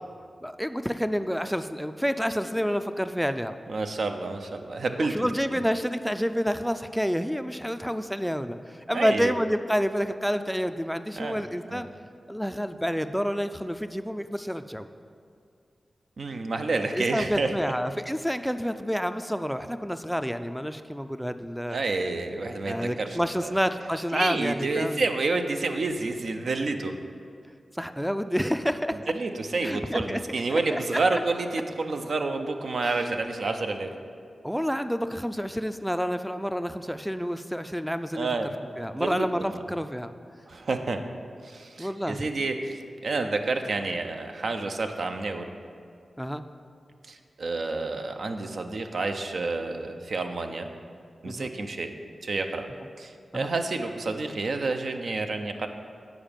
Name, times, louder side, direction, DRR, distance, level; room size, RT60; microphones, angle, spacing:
voice 1, 0.4-3.5 5.0-11.9 12.3-14.9 16.9-21.8 22.6-25.1 27.7-29.1 29.6-30.2 30.5-30.8 31.1-31.2 32.8-33.0 34.4-38.3 38.8-40.1 41.8-42.3 46.2-46.4 51.3-51.5 53.3-53.5, equal, ahead, 10 dB, 0.3 m, -29 dB
voice 2, 3.7-5.3 8.9-9.3 11.2-11.4 11.7-11.8 16.2-17.7 21.7-23.5 24.1-27.0 29.2-33.9 38.2-38.6 38.9-39.6 40.5-41.0 41.4-45.5 47.1-50.7 51.2-51.9 52.2-52.7 53.0-55.7, right 3 dB, 75° right, 6 dB, 0.5 m, -29 dB
9.0 x 4.8 x 5.1 m, 2.3 s
cardioid pair, 50°, 0 cm